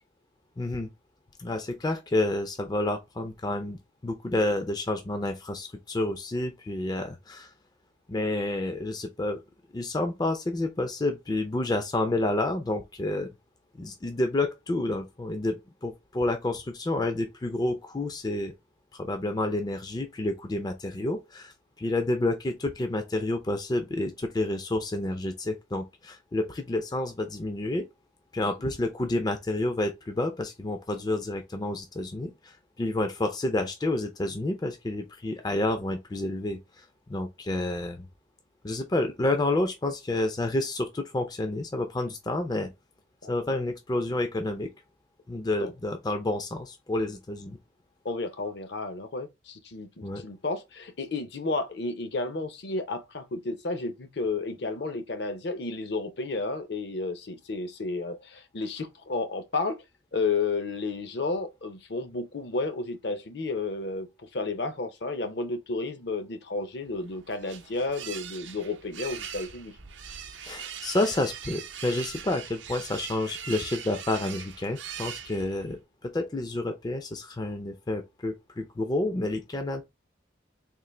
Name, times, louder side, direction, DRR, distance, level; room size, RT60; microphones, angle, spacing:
voice 1, 0.6-0.9 1.4-7.5 8.1-9.4 9.7-13.3 13.7-18.5 18.9-27.9 28.3-38.1 38.6-42.7 43.3-44.7 45.3-47.6 50.0-50.2 70.4-79.8, left 2 dB, 20° left, 0.4 m, -29 dB
voice 2, 48.0-59.8 60.1-69.8, left 3 dB, 60° left, 0.6 m, -32 dB
sound 1, 66.9-75.8, right 8 dB, 70° right, 0.6 m, -41 dB
3.7 x 2.5 x 3.1 m
head